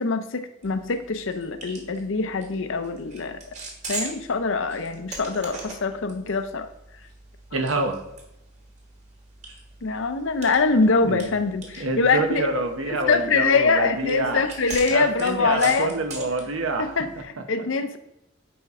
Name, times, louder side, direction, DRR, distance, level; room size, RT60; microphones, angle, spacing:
voice 1, 0.0-3.4 3.9-6.7 7.5-7.7 9.8-12.5 12.9-15.9 16.8-18.0, left 4 dB, 65° left, 9 dB, 0.6 m, -24 dB
sound 1, 0.6-17.2, right 3 dB, 35° right, 1.7 m, -41 dB
voice 2, 7.5-8.0 11.0-11.3 11.8-14.4 14.9-17.0 17.4-17.5, right 2 dB, 80° right, 5 dB, 1.1 m, -27 dB
10.0 x 4.4 x 3.7 m, 0.86 s
head